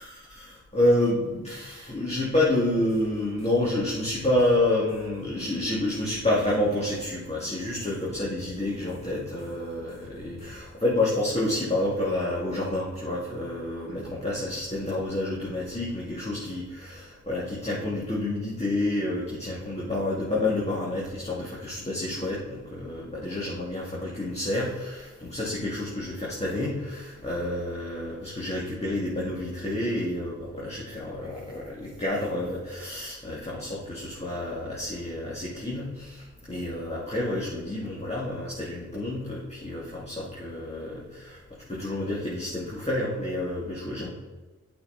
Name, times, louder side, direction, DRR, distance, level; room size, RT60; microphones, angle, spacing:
voice 1, 0.0-41.4 41.7-44.1, left 1 dB, 20° left, -6 dB, 2.8 m, -29 dB
sound 1, 2.9-10.7, left 2 dB, 55° left, 2.7 m, -49 dB
8.3 x 6.1 x 4.4 m, 1.2 s
cardioid pair, 45°, 31 cm